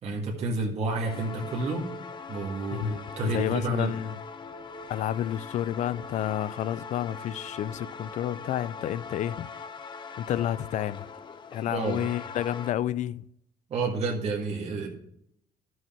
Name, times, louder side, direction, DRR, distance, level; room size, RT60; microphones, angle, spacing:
voice 1, 0.0-1.8 2.3-3.9 11.7-12.0 13.7-14.9, right 3 dB, 45° right, 1.8 m, -30 dB
sound 1, 0.8-12.7, left 5 dB, 30° left, 0.8 m, -41 dB
voice 2, 2.7-4.2 4.9-9.5 10.2-11.1 11.5-13.2, left 11 dB, 55° left, 0.4 m, -30 dB
12.5 x 6.3 x 4.4 m
cardioid pair, 130°, 15 cm